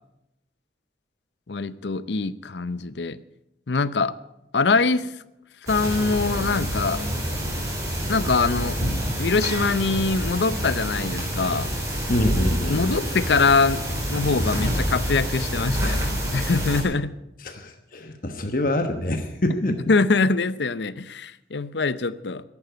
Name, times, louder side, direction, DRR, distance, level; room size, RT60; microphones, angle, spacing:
voice 1, 1.5-3.2 3.7-4.1 4.5-5.1 5.6-7.0 8.1-8.8 9.2-11.7 12.7-13.8 14.1-17.1 19.9-22.4, left 4 dB, 80° left, 16 dB, 0.7 m, -23 dB
sound 1, 5.7-16.8, equal, 20° right, 4.0 m, -27 dB
voice 2, 12.1-12.8 17.4-19.8, left 1 dB, 50° left, 6 dB, 1.2 m, -25 dB
14.0 x 11.0 x 8.0 m, 0.89 s
head